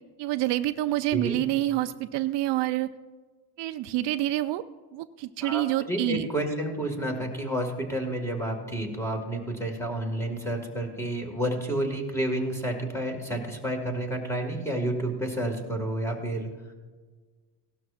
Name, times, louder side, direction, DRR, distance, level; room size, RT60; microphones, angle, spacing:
voice 1, 0.2-2.9 3.6-4.6 4.9-6.3, right 15 dB, 65° right, 10 dB, 0.5 m, -27 dB
voice 2, 5.4-16.5, right 1 dB, 5° left, 2 dB, 2.0 m, -30 dB
17.5 x 12.5 x 2.5 m, 1.4 s
cardioid pair, 135°, 45 cm